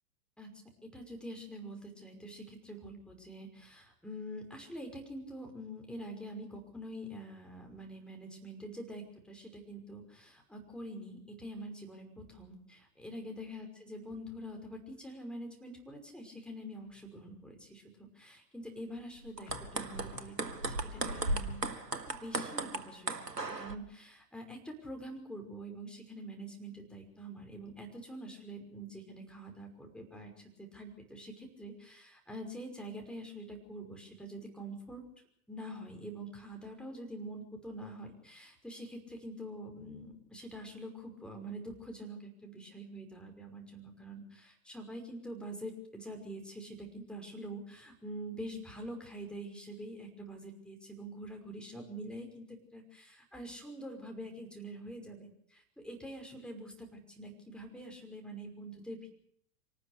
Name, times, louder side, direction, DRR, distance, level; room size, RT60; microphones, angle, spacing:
voice 1, 0.8-21.6 22.1-30.3 30.6-35.0 35.5-59.1, right 1 dB, ahead, 2 dB, 5.7 m, -45 dB
sound 1, 16.8-17.4 19.5-22.1, left 8 dB, 60° left, 3.3 m, -55 dB
sound 2, 19.2-23.8, right 2 dB, 85° right, 1.8 m, -36 dB
25.5 x 19.0 x 6.7 m, 0.68 s
figure-of-eight pair, 100°, 48 cm